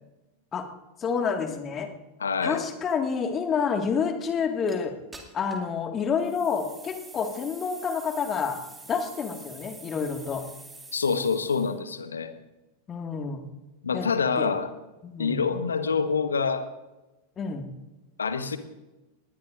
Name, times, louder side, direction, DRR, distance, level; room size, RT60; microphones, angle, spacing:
voice 1, 1.0-1.9 2.4-4.9 5.3-8.6 8.9-10.4 12.9-13.5 13.9-14.1 14.4-14.5 15.0-15.4 17.4-17.7, left 6 dB, 25° left, 5 dB, 1.8 m, -28 dB
voice 2, 2.2-2.6 10.9-12.3 13.8-14.7 15.2-16.7 18.2-18.6, left 5 dB, 70° left, 10 dB, 1.2 m, -26 dB
sound 1, 4.7-4.8 5.1-5.7 6.2-11.8, right 3 dB, 10° right, 2.3 m, -47 dB
20.0 x 20.0 x 2.6 m, 1.1 s
figure-of-eight pair, 90°, 0 cm